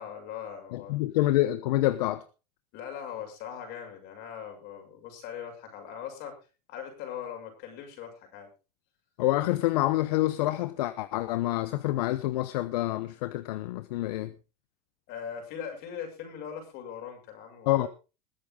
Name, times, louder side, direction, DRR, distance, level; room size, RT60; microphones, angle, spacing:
voice 1, 0.0-1.0 2.7-6.4 6.7-8.5 15.1-17.9, left 8 dB, 55° left, 6.6 m, -40 dB
voice 2, 0.7-2.2 9.2-14.3 17.7-17.9, left 16 dB, 75° left, 1.0 m, -27 dB
21.0 x 8.4 x 3.8 m
supercardioid pair, 115°, 21 cm